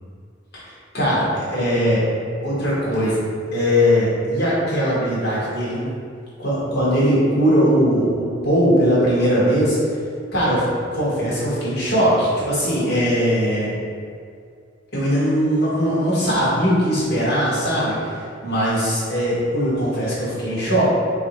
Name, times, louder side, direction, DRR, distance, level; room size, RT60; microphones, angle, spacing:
voice 1, 0.9-2.0 2.4-3.2 3.5-5.9 6.4-10.0 10.3-13.7 14.9-18.2 18.4-20.8, equal, 55° left, -9 dB, 1.2 m, -20 dB
4.0 x 2.5 x 2.9 m, 2.2 s
head